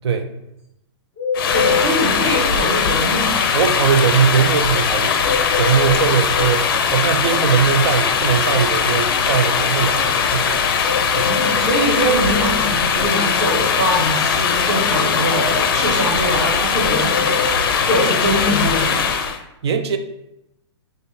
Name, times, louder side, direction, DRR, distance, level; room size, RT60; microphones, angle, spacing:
sound 1, 1.1-2.6 5.2-6.6 10.8-12.2 16.8-18.1, left 5 dB, 15° left, 0.7 m, -25 dB
sound 2, 1.3-19.4, left 6 dB, 50° left, 0.4 m, -19 dB
voice 1, 1.5-3.4 11.2-19.1, right 1 dB, 25° right, -6 dB, 1.2 m, -23 dB
voice 2, 3.5-5.2 5.6-10.7 11.1-11.3 19.6-20.0, right 7 dB, 65° right, 7 dB, 0.5 m, -20 dB
3.4 x 2.5 x 4.1 m, 0.88 s
hypercardioid pair, 170°, 15 cm